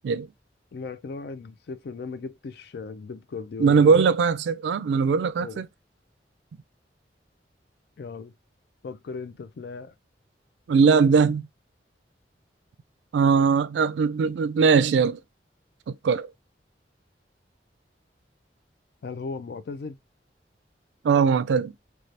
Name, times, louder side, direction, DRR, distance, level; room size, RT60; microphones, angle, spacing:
voice 1, 0.7-4.0 5.4-5.6 8.0-8.3 8.8-9.9 19.0-20.0, left 4 dB, 60° left, 0.4 m, -37 dB
voice 2, 3.6-5.7 10.7-11.5 13.1-15.2 16.0-16.3 21.0-21.7, right 5 dB, 85° right, 0.3 m, -20 dB
3.2 x 2.3 x 2.7 m
head